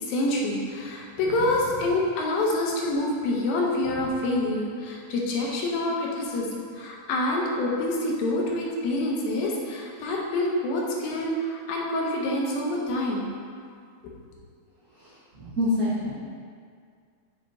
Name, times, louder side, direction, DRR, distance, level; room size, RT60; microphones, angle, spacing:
voice 1, 0.0-6.5 6.8-13.3, left 1 dB, 90° left, -2 dB, 2.6 m, -27 dB
voice 2, 15.0-16.1, left 1 dB, 75° right, -14 dB, 0.8 m, -27 dB
7.5 x 5.9 x 2.6 m, 2.2 s
omnidirectional pair, 4.0 m